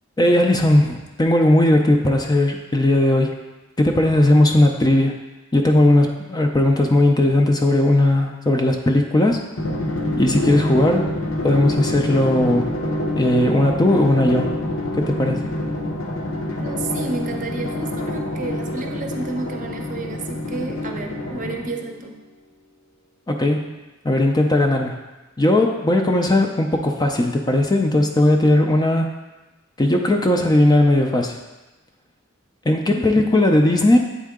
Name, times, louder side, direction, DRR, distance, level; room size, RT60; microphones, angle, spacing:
voice 1, 0.2-3.4 3.8-5.2 5.5-9.4 10.2-11.1 11.4-12.7 13.2-14.5 15.0-15.4 23.3-23.8 24.0-25.0 25.4-29.1 29.8-31.4 32.7-34.0, left 1 dB, 20° left, 3 dB, 0.4 m, -17 dB
Drum, 9.6-21.9, left 1 dB, 70° left, 0.9 m, -26 dB
voice 2, 16.6-22.2 32.9-33.3, right 3 dB, 40° right, 3 dB, 0.6 m, -31 dB
8.3 x 3.7 x 3.6 m, 1.1 s
head